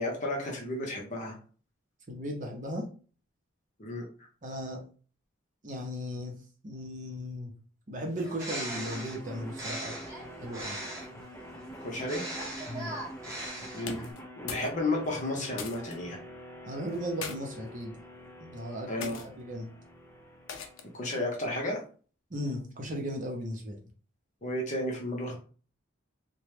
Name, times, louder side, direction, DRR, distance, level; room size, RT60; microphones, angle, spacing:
voice 1, 0.0-1.4 3.8-4.0 11.8-12.2 13.7-14.1 14.4-16.2 18.9-19.2 20.9-21.8 24.4-25.4, left 1 dB, 35° left, 0 dB, 0.8 m, -32 dB
voice 2, 2.1-2.9 4.4-4.8 5.6-6.3 6.6-7.5 7.9-10.0 10.4-10.8 12.7-12.9 16.7-18.0 18.4-19.7 22.3-23.8, equal, 40° right, 1 dB, 0.6 m, -36 dB
Bird, 8.1-11.2 11.9-14.1, right 1 dB, 15° right, 0.9 m, -40 dB
sound 1, 8.7-21.7, equal, 10° left, 0.4 m, -46 dB
sound 2, 13.9-14.7 15.0-16.0 16.9-17.4 18.1-18.4 19.0-19.3 20.5-21.0, left 6 dB, 75° left, 0.5 m, -41 dB
3.0 x 2.2 x 3.2 m, 0.40 s
head